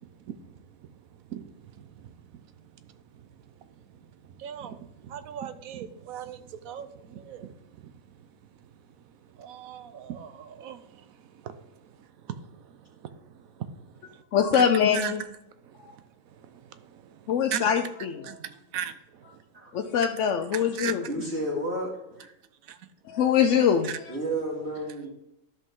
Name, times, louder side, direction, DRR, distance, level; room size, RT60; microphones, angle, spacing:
voice 1, 0.0-0.6 1.3-1.5 1.8-2.2 3.1-3.3 4.3-7.9 9.3-11.6 12.2-14.2 14.5-14.6 14.9-15.2 15.7-16.0 16.3-17.7 18.2-19.4 19.7-19.9 20.5-21.0 22.7-22.9 23.8-24.0, right 9 dB, 85° right, 1.1 m, -39 dB
voice 2, 14.3-15.2 17.3-18.3 19.7-21.0 23.1-24.1, left 8 dB, 65° left, 0.9 m, -23 dB
voice 3, 21.1-21.9 22.2-22.3 24.1-25.1, right 1 dB, 50° right, 2.9 m, -31 dB
12.5 x 5.4 x 3.7 m
omnidirectional pair, 1.4 m